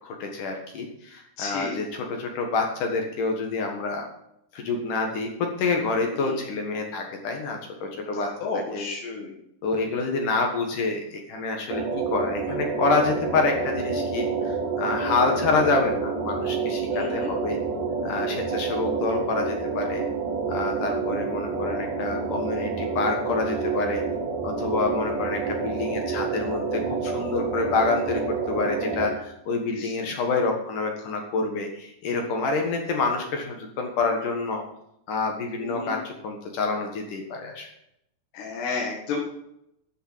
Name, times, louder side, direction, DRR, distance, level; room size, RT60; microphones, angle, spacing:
voice 1, 0.0-4.0 4.5-8.3 8.5-8.9 9.6-17.6 18.0-20.0 20.5-24.0 24.4-34.6 35.1-37.7, left 3 dB, 60° left, 3 dB, 2.6 m, -27 dB
voice 2, 1.4-1.8 6.3-6.4 8.2-9.3 16.9-17.3 29.8-29.9 35.6-35.9 38.3-39.2, left 4 dB, 75° left, -2 dB, 4.0 m, -32 dB
sound 1, 11.7-29.1, right 4 dB, 90° right, 4.0 m, -28 dB
12.5 x 6.8 x 7.4 m, 0.79 s
omnidirectional pair, 4.9 m